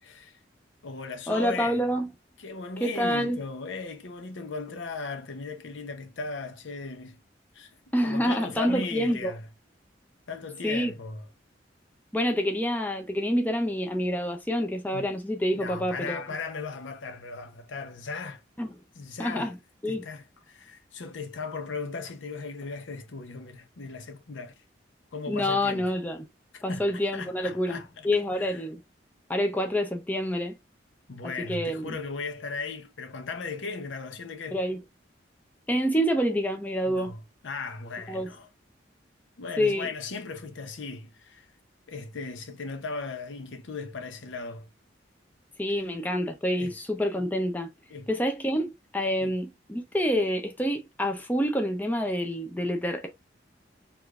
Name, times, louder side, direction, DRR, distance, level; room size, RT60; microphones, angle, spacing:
voice 1, 0.0-0.4 0.8-1.8 2.4-7.2 7.5-7.8 8.0-9.5 10.3-11.3 14.9-15.1 15.5-18.4 18.9-19.5 19.9-24.6 25.1-25.9 26.5-28.1 28.4-28.6 31.1-34.6 36.9-38.5 39.4-41.5 41.9-44.7 45.7-45.9 46.5-46.8 47.9-48.1 49.2-49.3, left 4 dB, 85° left, 0.7 m, -37 dB
voice 2, 1.3-2.1 2.8-3.4 7.9-9.3 10.6-10.9 12.1-16.2 18.6-18.7 19.2-19.6 19.8-20.0 25.3-26.3 26.6-28.8 29.3-30.6 31.4-32.0 34.5-34.8 35.7-37.1 38.1-38.3 39.6-39.9 45.6-47.7 48.1-53.1, equal, 10° left, 0.5 m, -27 dB
4.9 x 2.5 x 2.4 m
head